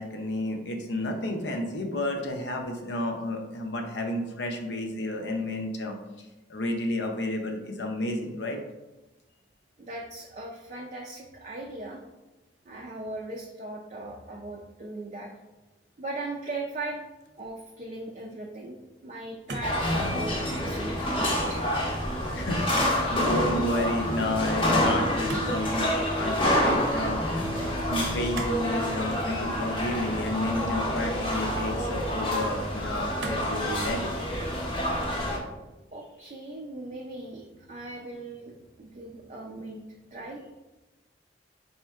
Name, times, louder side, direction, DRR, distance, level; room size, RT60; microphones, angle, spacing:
voice 1, 0.0-8.6 22.3-27.2 27.9-34.1, left 1 dB, 70° left, 3 dB, 0.6 m, -31 dB
voice 2, 9.8-12.0 12.7-15.3 16.0-17.0 17.4-18.8 19.0-21.6 35.9-39.8 40.1-40.5, right 2 dB, 40° right, 0 dB, 0.4 m, -39 dB
sound 1, 19.5-20.2 20.6-21.0 22.7-23.0 23.3-23.5 25.3-26.1 28.3-28.7 29.1-29.3 30.2-31.0 31.7-31.8 33.2-33.6 34.2-34.7 35.0-35.4, right 1 dB, 75° right, 0.7 m, -39 dB
sound 2, 19.6-35.4, left 1 dB, 25° left, 0.7 m, -28 dB
sound 3, 19.8-22.5 23.3-30.2 30.6-30.9, equal, 5° right, 0.9 m, -37 dB
4.2 x 3.6 x 2.3 m, 1.1 s
head